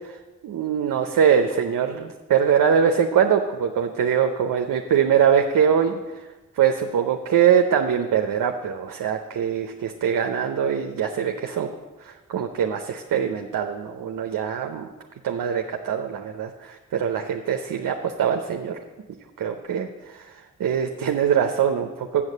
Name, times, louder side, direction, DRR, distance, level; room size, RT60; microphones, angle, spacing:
voice 1, 0.4-6.0 6.6-11.7 12.0-14.9 15.2-18.8 19.4-20.3 20.6-22.2, right 8 dB, 70° right, 4 dB, 0.7 m, -22 dB
7.3 x 6.4 x 7.3 m, 1.2 s
supercardioid pair, 40°, 33 cm